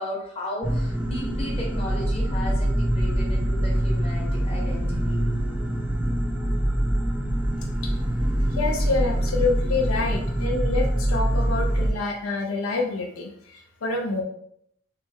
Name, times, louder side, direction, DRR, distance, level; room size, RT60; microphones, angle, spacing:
voice 1, 0.0-5.3, left 1 dB, 25° left, -3 dB, 1.0 m, -35 dB
sound 1, 0.6-11.9, right 1 dB, 5° right, 0.3 m, -24 dB
voice 2, 8.6-14.2, left 3 dB, 70° left, 1 dB, 0.5 m, -27 dB
3.3 x 3.0 x 3.4 m, 0.71 s
head